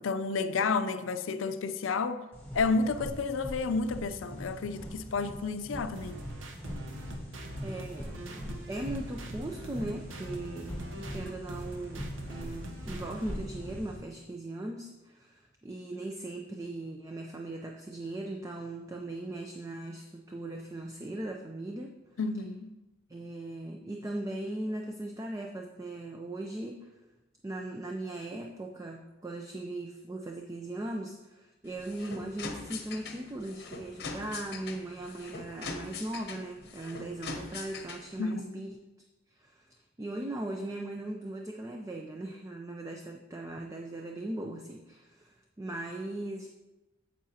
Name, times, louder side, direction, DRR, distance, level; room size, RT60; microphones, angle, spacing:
voice 1, 0.0-2.3 2.5-6.2 22.2-22.7 38.2-38.7, left 4 dB, 85° left, 0.5 m, -31 dB
sound 1, 2.3-14.0, equal, 10° left, 2.5 m, -42 dB
sound 2, 6.0-13.4, right 1 dB, 80° right, 0.8 m, -44 dB
voice 2, 7.6-8.1 8.7-21.9 23.1-26.9 27.4-38.8 39.4-46.5, right 1 dB, 15° right, 0.4 m, -39 dB
Ribbon Machine, 31.6-38.2, left 4 dB, 55° left, 0.9 m, -42 dB
8.7 x 7.5 x 2.8 m
head